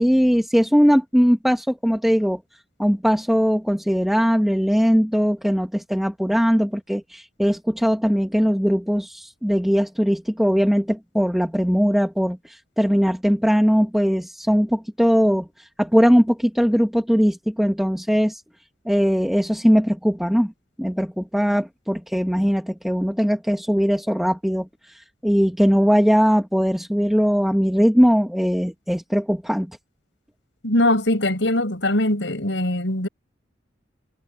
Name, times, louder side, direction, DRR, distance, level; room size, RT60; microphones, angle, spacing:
voice 1, 0.0-2.4 2.8-18.4 18.8-20.5 20.8-29.7, equal, ahead, 1.5 m, -20 dB
voice 2, 30.6-33.1, left 1 dB, 85° left, 6.2 m, -21 dB
head